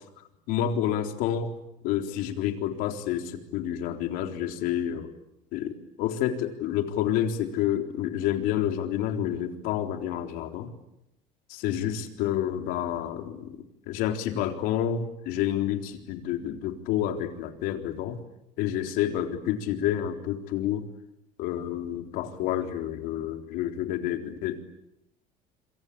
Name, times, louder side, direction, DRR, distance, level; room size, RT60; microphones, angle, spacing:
voice 1, 0.5-1.5 1.8-5.1 5.5-10.7 11.5-13.6 13.9-18.2 18.6-20.8 21.4-24.6, left 10 dB, 75° left, 6 dB, 3.9 m, -29 dB
27.5 x 25.0 x 8.7 m, 0.82 s
cardioid pair, 140°, 15 cm